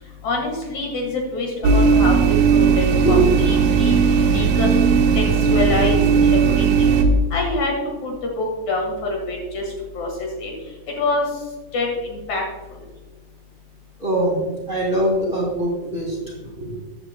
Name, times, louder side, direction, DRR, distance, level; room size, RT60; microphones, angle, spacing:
voice 1, 0.2-3.2 3.4-7.0 7.3-7.7 8.0-9.6 9.9-10.5 11.0-11.3 11.7-12.4, left 2 dB, 65° left, 1 dB, 2.9 m, -26 dB
sound 1, 1.6-7.0, right 5 dB, 75° right, 2.8 m, -17 dB
voice 2, 14.0-16.8, right 1 dB, 20° right, -5 dB, 3.4 m, -23 dB
13.5 x 10.5 x 2.2 m, 1.2 s
omnidirectional pair, 3.7 m